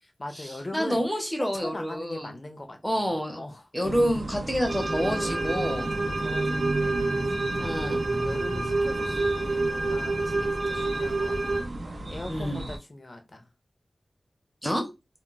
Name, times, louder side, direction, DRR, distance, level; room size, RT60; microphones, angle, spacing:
voice 1, 0.0-1.0 1.4-3.0 3.3-3.7 5.6-11.7 12.1-13.5, left 2 dB, 40° left, 0.6 m, -41 dB
voice 2, 0.7-2.3 2.8-3.4 3.7-5.9 7.6-8.0 12.3-12.6 14.6-14.8, equal, 5° left, 0.7 m, -28 dB
sound 1, 3.8-12.8, right 2 dB, 55° right, 0.5 m, -34 dB
sound 2, 4.7-11.6, right 2 dB, 85° right, 0.9 m, -28 dB
2.2 x 2.1 x 3.8 m
wide cardioid pair, 90°, 0 cm